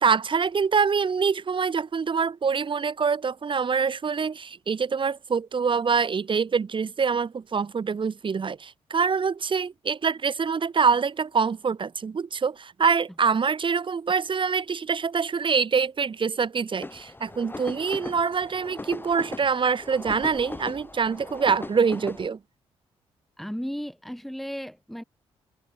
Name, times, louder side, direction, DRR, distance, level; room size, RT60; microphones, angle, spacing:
voice 1, 0.0-22.4, right 5 dB, 45° right, 1.8 m, -25 dB
sound 1, 16.8-22.3, left 2 dB, 15° left, 1.6 m, -39 dB
voice 2, 23.4-25.0, equal, ahead, 2.8 m, -34 dB
supercardioid pair, 60°, 12 cm